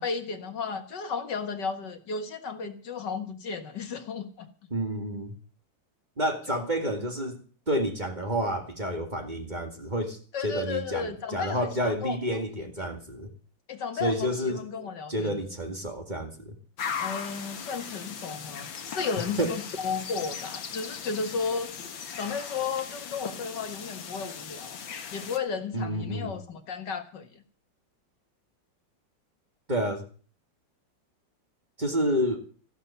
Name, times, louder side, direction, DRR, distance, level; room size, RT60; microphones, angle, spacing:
voice 1, 0.0-4.5 6.5-6.6 10.3-12.4 13.7-15.4 17.0-21.7 22.2-24.8 25.1-27.4, left 5 dB, 65° left, 8 dB, 2.2 m, -34 dB
voice 2, 4.7-5.3 6.2-7.4 7.7-10.2 10.4-13.3 14.0-14.6 15.1-16.5 19.4-19.5 25.7-26.3 29.7-30.0 31.8-32.4, equal, 25° right, 4 dB, 2.1 m, -29 dB
sound 1, 16.8-25.4, left 7 dB, 85° left, 2.2 m, -38 dB
15.0 x 11.5 x 7.0 m, 0.40 s
omnidirectional pair, 2.0 m